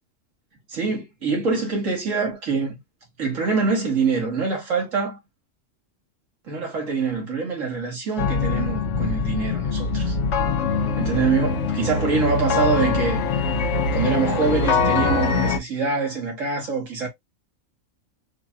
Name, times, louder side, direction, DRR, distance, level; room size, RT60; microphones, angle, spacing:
voice 1, 0.7-2.7 3.2-5.2 6.5-10.2 11.0-13.2 13.9-17.1, right 4 dB, 80° right, 1.9 m, -24 dB
sound 1, 8.2-15.6, left 4 dB, 70° left, 1.0 m, -23 dB
4.9 x 2.8 x 2.3 m
omnidirectional pair, 1.3 m